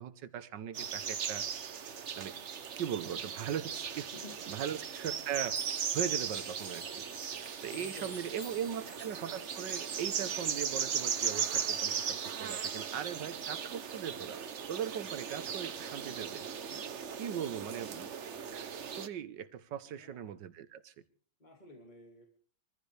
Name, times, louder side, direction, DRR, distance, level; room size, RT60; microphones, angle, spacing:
voice 1, 0.0-1.5 2.1-2.3 2.7-4.1 4.5-5.6 5.9-7.0 7.6-14.4 14.7-16.5 17.2-18.1 18.5-20.9, right 9 dB, 70° right, 12 dB, 1.6 m, -39 dB
sound 1, 0.7-19.1, right 7 dB, 50° right, 1.0 m, -37 dB
voice 2, 4.1-4.7 7.8-9.0 16.7-16.8 19.8-20.3 21.4-22.3, left 2 dB, 25° left, 1 dB, 2.7 m, -53 dB
sound 2, 5.4-10.5, left 1 dB, 60° left, 3.3 m, -51 dB
25.0 x 15.0 x 3.3 m, 0.43 s
omnidirectional pair, 2.0 m